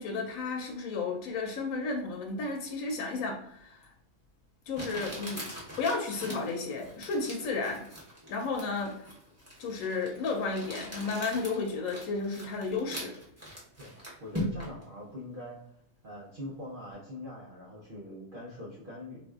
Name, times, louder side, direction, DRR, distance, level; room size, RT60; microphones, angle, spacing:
voice 1, 0.0-3.9 4.7-5.5 5.8-7.9 8.3-9.1 9.6-13.2, left 4 dB, 80° left, 2 dB, 1.0 m, -33 dB
Crumpling crinkling, 3.8-3.9 4.7-14.8, equal, 15° right, 0.8 m, -41 dB
voice 2, 13.8-15.6 16.0-19.2, left 1 dB, 50° right, -5 dB, 0.7 m, -43 dB
4.1 x 2.5 x 2.3 m, 0.78 s
omnidirectional pair, 1.5 m